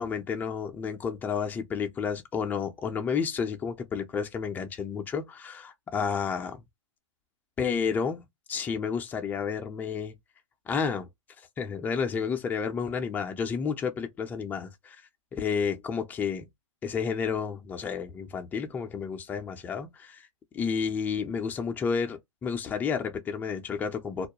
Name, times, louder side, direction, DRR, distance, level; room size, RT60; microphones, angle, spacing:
voice 1, 0.0-6.6 7.6-8.2 8.5-10.2 10.7-11.1 11.6-15.0 15.3-16.5 16.8-20.3 20.5-24.3, left 6 dB, 10° left, 0.4 m, -31 dB
2.3 x 2.1 x 2.8 m
hypercardioid pair, 140°, 16 cm